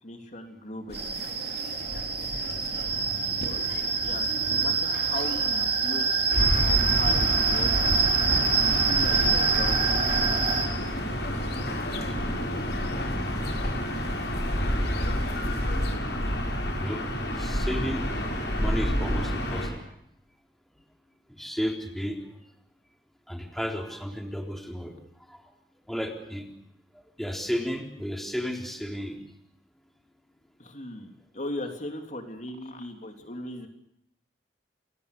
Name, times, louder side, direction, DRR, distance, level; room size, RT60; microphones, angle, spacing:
voice 1, 0.0-1.1 3.4-7.7 8.6-9.9 30.6-33.7, left 1 dB, 45° left, 5 dB, 3.2 m, -38 dB
sound 1, 0.9-16.0, left 1 dB, 60° left, 3.8 m, -39 dB
sound 2, 0.9-10.7, right 5 dB, 35° right, 4.7 m, -26 dB
Gull seagull / Ocean, 6.3-19.7, equal, 80° left, 7.5 m, -29 dB
voice 2, 17.3-19.8 21.3-22.2 23.3-24.9 25.3-25.4 25.9-26.5 27.2-29.2, equal, ahead, 2 dB, 3.9 m, -33 dB
29.0 x 22.5 x 6.8 m, 0.77 s
head